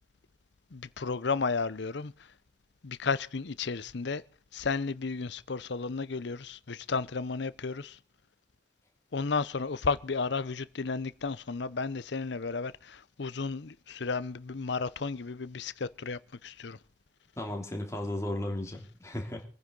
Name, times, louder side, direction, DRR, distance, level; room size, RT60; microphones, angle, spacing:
voice 1, 0.7-2.3 2.8-4.2 4.5-8.0 9.1-16.8, left 4 dB, 65° left, 0.7 m, -33 dB
voice 2, 17.4-19.5, left 1 dB, 15° left, 3.1 m, -35 dB
25.5 x 9.9 x 3.9 m
head